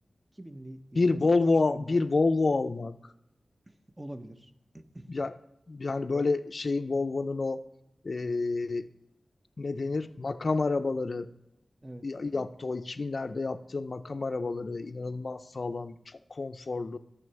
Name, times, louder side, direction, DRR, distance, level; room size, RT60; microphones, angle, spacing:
voice 1, 0.3-1.4 1.7-2.0 3.7-5.2 11.8-12.5, right 1 dB, 20° right, 9 dB, 0.8 m, -46 dB
voice 2, 1.0-3.1 5.1-5.3 5.7-7.6 8.0-8.9 9.6-11.3 12.0-17.0, left 3 dB, 60° left, 12 dB, 0.4 m, -29 dB
9.6 x 5.7 x 6.8 m, 0.85 s
cardioid pair, 50°, 0 cm